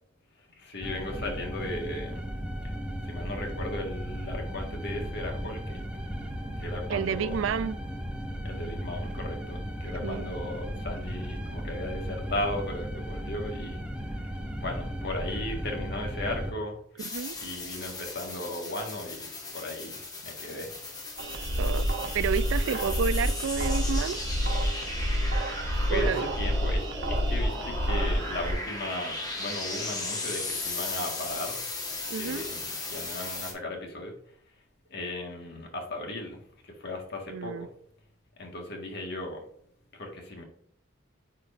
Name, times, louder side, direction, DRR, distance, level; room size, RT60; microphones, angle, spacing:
voice 1, 0.4-2.2 2.6-2.7 3.0-5.8 6.6-7.5 8.4-13.8 14.6-16.8 17.4-19.3 19.5-20.9 22.6-22.8 25.7-31.6 32.1-34.1 34.9-37.7 38.4-39.4 39.9-40.4, left 1 dB, 60° left, 1.7 m, -36 dB
sound 1, 0.8-16.5, equal, 5° right, 0.7 m, -35 dB
voice 2, 6.9-7.8 10.0-10.3 17.1-17.4 21.6-21.8 22.1-24.2 25.9-26.2 32.1-32.4 37.3-37.7, right 6 dB, 80° right, 0.4 m, -30 dB
sound 2, 17.0-33.5, left 3 dB, 20° left, 1.4 m, -37 dB
sound 3, 21.2-28.5, equal, 60° right, 1.1 m, -28 dB
9.4 x 4.6 x 2.6 m
head